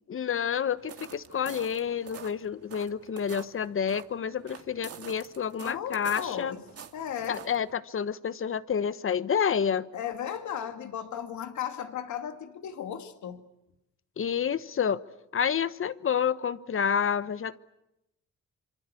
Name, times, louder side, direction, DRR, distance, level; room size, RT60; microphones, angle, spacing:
voice 1, 0.1-6.5 7.3-9.9 14.2-15.0 15.3-17.6, left 7 dB, 45° left, 15 dB, 1.1 m, -29 dB
sound 1, 0.7-7.8, right 7 dB, 55° right, 2.3 m, -47 dB
voice 2, 5.6-6.6 6.9-7.4 9.9-13.4, left 9 dB, 70° left, 7 dB, 2.5 m, -35 dB
27.0 x 25.0 x 8.5 m, 0.89 s
cardioid pair, 90°, 30 cm